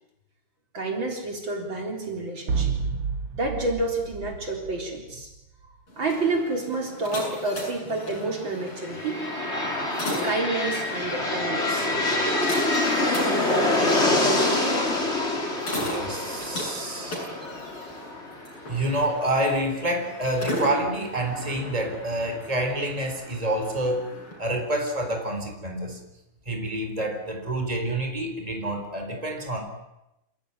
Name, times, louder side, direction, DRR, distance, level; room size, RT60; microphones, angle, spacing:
voice 1, 0.7-2.8 3.4-5.3 6.0-9.3 10.2-11.9, right 2 dB, 60° right, 2 dB, 4.7 m, -29 dB
sound 1, 2.5-5.4, right 5 dB, 90° right, 2.5 m, -30 dB
sound 2, 5.9-24.4, left 1 dB, 80° left, 9.1 m, -37 dB
sound 3, 8.9-18.7, left 2 dB, 30° left, 4.3 m, -25 dB
voice 2, 15.7-17.2 18.7-24.0 24.4-26.0 26.5-29.6, right 1 dB, 15° right, 4 dB, 4.2 m, -28 dB
28.0 x 17.0 x 9.7 m, 0.90 s
omnidirectional pair, 2.4 m